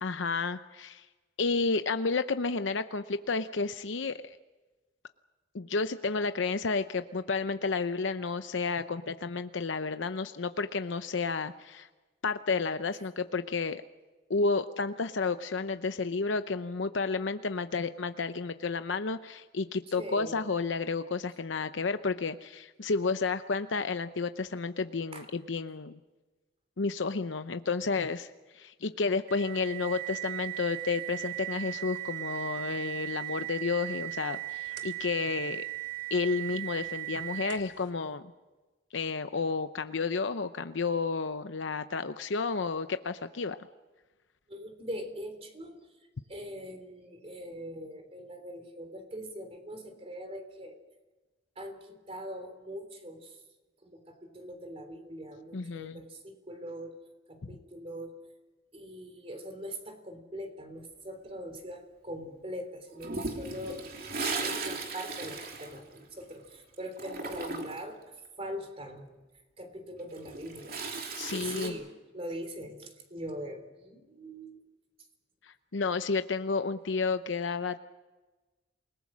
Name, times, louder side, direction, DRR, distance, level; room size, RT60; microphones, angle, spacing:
voice 1, 0.0-1.1 1.4-4.4 5.5-11.9 12.2-13.8 14.3-26.0 26.8-35.6 36.1-38.2 38.9-43.6 55.5-56.0 71.2-71.8 75.4-77.8, left 4 dB, 75° left, 10 dB, 0.7 m, -31 dB
voice 2, 20.0-20.4 25.1-25.2 44.5-45.8 46.3-50.8 51.6-53.4 53.8-56.9 57.3-58.1 58.7-63.8 64.4-68.0 68.4-69.0 69.6-70.8 71.3-74.6, equal, 30° right, 6 dB, 3.5 m, -42 dB
sound 1, 29.3-37.8, right 20 dB, 75° right, 2.8 m, -38 dB
Toilet flush, 63.0-66.5 66.7-67.9 70.0-71.7, right 3 dB, 50° right, 3.0 m, -37 dB
28.5 x 19.5 x 6.3 m, 1.2 s
head